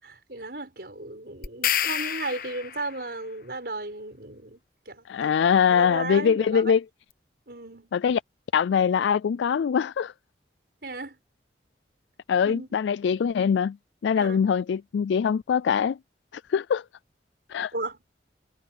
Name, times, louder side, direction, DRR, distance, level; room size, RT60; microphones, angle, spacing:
voice 1, 0.0-4.6 4.9-5.5 5.7-6.7 7.5-7.9 10.8-11.2 12.4-12.7 14.2-14.4 17.7-18.0, right 2 dB, 55° right, 6.3 m, -35 dB
sound 1, 1.4-3.0, left 10 dB, 50° left, 1.0 m, -28 dB
voice 2, 5.1-6.8 7.9-8.2 8.5-10.1 12.3-13.8 14.0-16.0 16.5-16.8 17.5-17.7, left 7 dB, 75° left, 0.3 m, -23 dB
head